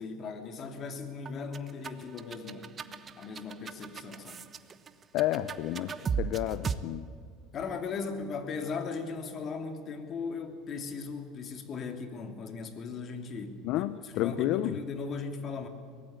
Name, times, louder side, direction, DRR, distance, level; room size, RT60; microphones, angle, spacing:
voice 1, 0.0-2.8 3.2-4.4 7.5-15.7, left 5 dB, 40° left, 6 dB, 3.1 m, -38 dB
sound 1, 1.3-6.7, right 6 dB, 35° right, 1.1 m, -36 dB
voice 2, 5.1-7.1 13.6-14.7, left 14 dB, 60° left, 14 dB, 0.7 m, -30 dB
23.0 x 18.5 x 9.0 m, 2.1 s
hypercardioid pair, 80°, 0 cm